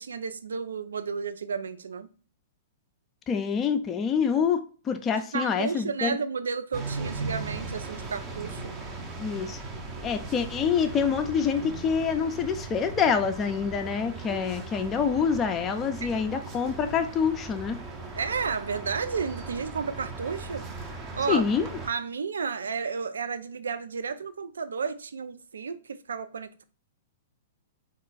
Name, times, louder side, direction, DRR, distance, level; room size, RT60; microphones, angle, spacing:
voice 1, 0.0-2.1 5.3-8.7 16.0-16.1 18.2-20.6 21.1-21.4 21.8-26.6, right 5 dB, 75° right, 0.4 m, -32 dB
voice 2, 3.3-6.2 9.2-9.6 10.0-17.8 21.3-21.7, left 6 dB, 25° left, 0.4 m, -26 dB
sound 1, 6.7-21.9, right 3 dB, 20° right, 0.7 m, -38 dB
3.9 x 2.4 x 3.8 m
figure-of-eight pair, 110°, 0 cm